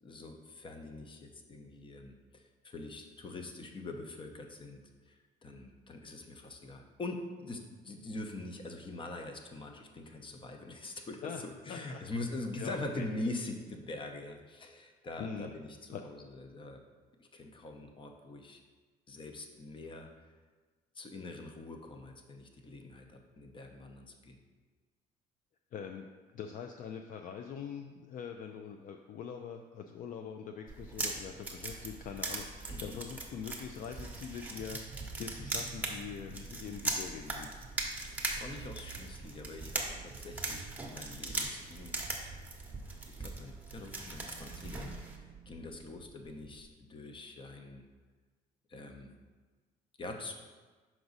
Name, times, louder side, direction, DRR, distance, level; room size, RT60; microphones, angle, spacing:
voice 1, 0.0-16.8 17.2-18.6 19.1-20.1 20.9-24.4 32.7-33.0 38.0-42.4 43.2-47.8 48.7-49.1 50.0-50.3, left 2 dB, 30° left, 4 dB, 0.8 m, -44 dB
voice 2, 11.7-12.0 12.6-13.1 15.2-15.5 15.9-16.0 25.7-26.1 26.3-37.5, left 7 dB, 55° left, 5 dB, 0.4 m, -43 dB
sound 1, 30.7-45.2, right 2 dB, 10° right, 0.9 m, -40 dB
sound 2, 34.3-46.7, right 6 dB, 35° right, 0.5 m, -52 dB
6.1 x 4.8 x 4.0 m, 1.4 s
cardioid pair, 110°, 17 cm